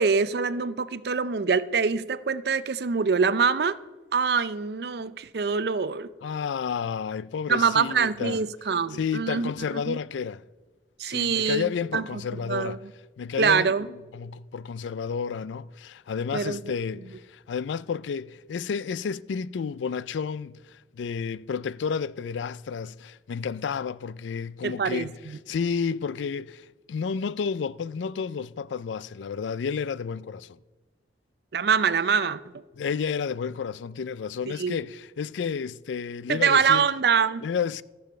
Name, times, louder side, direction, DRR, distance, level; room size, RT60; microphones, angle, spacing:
voice 1, 0.0-3.8 4.1-6.1 7.5-10.0 11.0-12.8 13.4-13.9 16.3-16.6 24.6-25.4 31.5-32.4 34.6-34.8 36.3-37.5, right 5 dB, 60° right, 0.5 m, -24 dB
voice 2, 6.2-8.4 8.9-10.4 11.0-12.8 13.2-25.1 25.5-30.6 32.8-36.8 37.4-37.8, left 6 dB, 85° left, 0.4 m, -31 dB
13.5 x 7.1 x 6.7 m
head